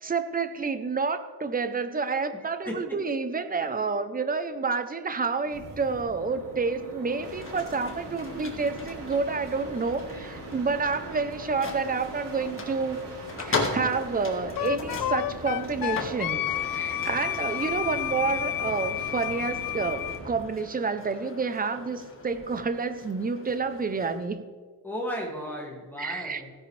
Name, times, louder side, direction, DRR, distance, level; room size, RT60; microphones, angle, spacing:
voice 1, 0.0-13.0 13.4-24.5 26.0-26.4, right 4 dB, 20° right, 10 dB, 0.7 m, -29 dB
voice 2, 2.7-3.0 3.6-3.7 24.8-26.5, equal, 5° left, -2 dB, 2.3 m, -35 dB
sound 1, 5.4-20.5 22.2-22.7, right 2 dB, 80° right, 4.4 m, -41 dB
sound 2, 7.1-24.3, left 3 dB, 30° left, 1.7 m, -39 dB
Wind instrument woodwind instrument, 14.6-20.2, left 13 dB, 55° left, 0.5 m, -30 dB
16.5 x 10.5 x 3.4 m, 1.5 s
cardioid pair, 140°, 41 cm